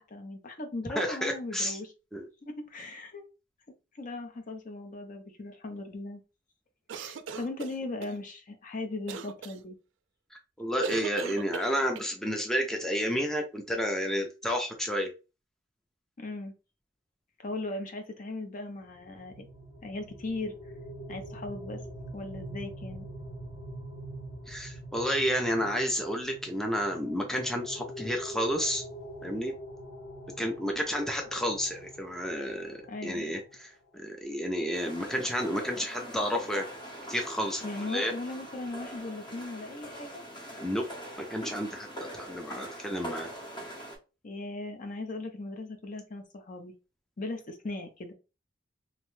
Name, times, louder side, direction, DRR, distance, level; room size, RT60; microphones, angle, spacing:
voice 1, 0.0-1.9 2.4-3.2 4.0-6.2 6.9-9.8 16.2-16.5 17.4-19.5 19.8-20.5 21.1-21.8 22.1-23.1 32.9-33.2 37.6-40.1 44.2-46.7 47.2-48.1, left 2 dB, 45° left, 5 dB, 0.6 m, -38 dB
voice 2, 1.0-1.8 2.1-2.2 10.3-15.1 24.5-28.8 29.2-29.5 30.4-36.6 37.1-37.6 37.9-38.1 40.6-40.8 41.2-41.9 42.2-43.3, equal, 5° left, 2 dB, 0.4 m, -31 dB
sound 1, 6.9-8.1 9.1-9.6 10.8-12.1, right 5 dB, 80° right, 0.3 m, -38 dB
sound 2, 18.8-33.5, right 1 dB, 90° left, 1.0 m, -44 dB
sound 3, 34.7-44.0, right 1 dB, 25° left, 1.0 m, -43 dB
2.8 x 2.1 x 3.0 m, 0.31 s
head